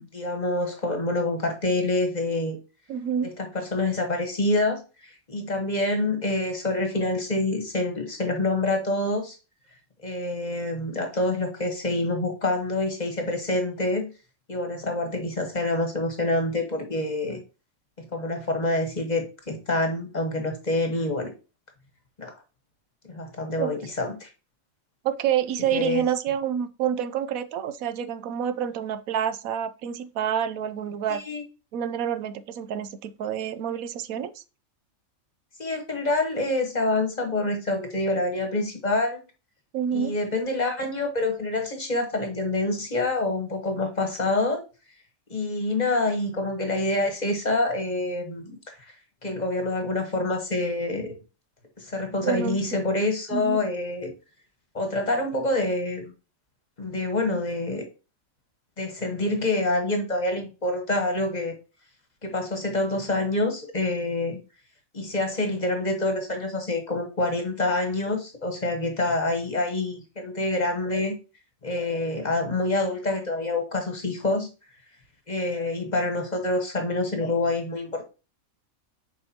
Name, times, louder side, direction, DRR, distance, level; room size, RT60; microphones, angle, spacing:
voice 1, 0.0-2.6 3.4-9.4 10.0-14.1 14.5-17.4 18.0-21.3 22.2-22.3 23.1-24.3 25.7-26.0 31.1-31.4 35.6-39.2 39.9-44.6 45.3-48.9 49.2-51.1 51.8-54.1 54.7-56.1 56.8-57.8 58.8-61.5 62.2-64.4 64.9-71.2 71.6-74.5 75.3-78.0, left 2 dB, 35° left, 1.2 m, -26 dB
voice 2, 2.9-3.3 23.6-23.7 25.0-31.2 31.7-34.4 39.7-40.1 52.2-52.6 53.3-53.6, right 9 dB, 90° right, 1.1 m, -28 dB
7.2 x 4.9 x 2.8 m
omnidirectional pair, 1.4 m